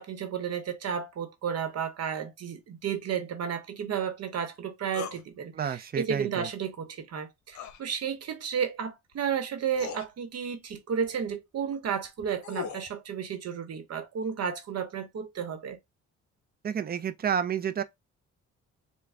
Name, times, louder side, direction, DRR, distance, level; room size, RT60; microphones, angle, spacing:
voice 1, 0.0-15.8, right 7 dB, 55° right, 1.0 m, -32 dB
sound 1, 4.9-5.2 7.5-7.8 9.1-9.2 9.7-10.1 12.0-12.9, left 7 dB, 70° left, 0.8 m, -38 dB
voice 2, 5.5-6.5 16.6-17.8, right 8 dB, 30° right, 0.5 m, -30 dB
3.6 x 2.3 x 3.3 m
cardioid pair, 90°, 30 cm